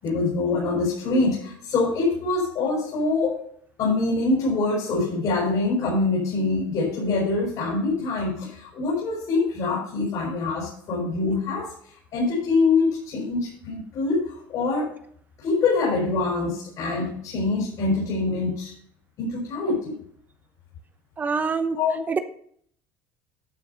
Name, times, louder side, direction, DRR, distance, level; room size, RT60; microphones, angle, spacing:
voice 1, 0.0-3.4 3.8-11.7 12.1-14.9 15.4-18.7 19.2-20.0 21.7-22.0, left 3 dB, 60° left, -3 dB, 5.6 m, -24 dB
voice 2, 21.2-21.8 22.1-22.2, right 5 dB, 25° right, 10 dB, 0.8 m, -25 dB
12.0 x 6.0 x 5.7 m, 0.63 s
cardioid pair, 115°, 7 cm